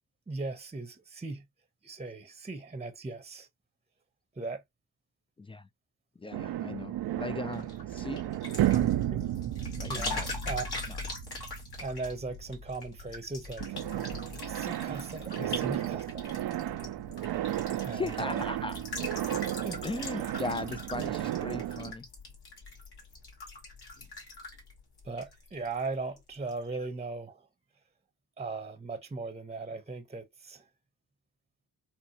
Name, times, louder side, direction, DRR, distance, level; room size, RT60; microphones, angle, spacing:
voice 1, 0.3-1.4 1.8-3.5 4.4-4.6 9.1-9.2 9.9-10.2 10.4-10.6 11.8-13.7 14.4-16.4 17.8-18.4 19.6-19.8 25.0-27.5 28.4-30.6, right 3 dB, 15° right, 0.8 m, -38 dB
voice 2, 5.4-5.7 6.2-8.2 9.8-10.3 10.9-11.0 15.4-15.6 17.9-18.8 19.8-22.1, left 3 dB, 15° left, 0.3 m, -38 dB
sound 1, 6.3-13.3 13.6-21.9, right 13 dB, 60° right, 0.5 m, -33 dB
sound 2, 7.5-25.9 26.2-26.6, left 3 dB, 60° left, 2.0 m, -42 dB
4.2 x 2.1 x 2.9 m
supercardioid pair, 45°, 43 cm